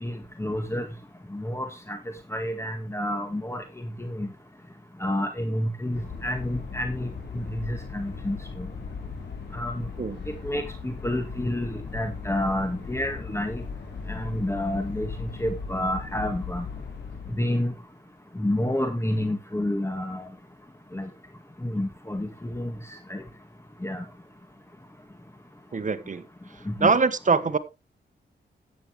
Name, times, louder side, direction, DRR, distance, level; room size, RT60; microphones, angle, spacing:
voice 1, 0.0-0.9 1.3-2.0 2.3-3.6 4.0-4.3 5.0-7.1 7.3-8.7 9.5-9.9 10.4-13.6 14.1-15.1 15.4-16.6 17.4-17.7 18.4-20.3 20.9-21.1 21.6-22.7 23.1-23.2 23.8-24.0 26.7-26.9, left 1 dB, 15° left, 1.9 m, -29 dB
sound 1, 5.9-17.4, left 5 dB, 70° left, 4.2 m, -38 dB
voice 2, 25.7-26.2 26.8-27.6, right 4 dB, 45° right, 1.4 m, -23 dB
14.0 x 8.9 x 3.4 m
cardioid pair, 65°, 18 cm